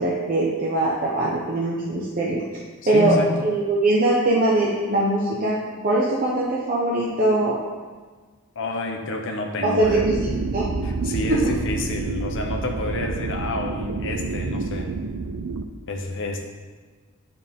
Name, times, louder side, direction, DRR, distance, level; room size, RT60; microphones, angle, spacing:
voice 1, 0.0-2.4 2.9-7.6 9.6-10.1 10.5-10.6 11.0-11.5, right 2 dB, 40° right, -5 dB, 0.8 m, -22 dB
voice 2, 2.8-3.3 8.5-10.0 10.8-14.9 15.9-16.4, left 1 dB, 60° left, 2 dB, 0.9 m, -29 dB
sound 1, 9.8-15.6, right 3 dB, 80° right, 0.5 m, -29 dB
10.5 x 4.2 x 3.6 m, 1.4 s
head